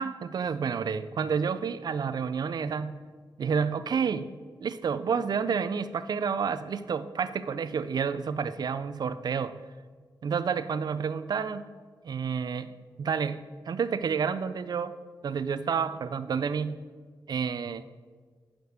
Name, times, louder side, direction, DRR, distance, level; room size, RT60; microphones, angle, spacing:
voice 1, 0.0-3.0 3.4-4.3 4.6-9.5 10.2-11.7 12.0-12.7 13.0-13.4 13.7-14.9 15.2-16.8 17.3-17.9, right 6 dB, 55° right, 13 dB, 0.4 m, -29 dB
9.0 x 5.2 x 6.5 m, 1.6 s
wide cardioid pair, 145°, 8 cm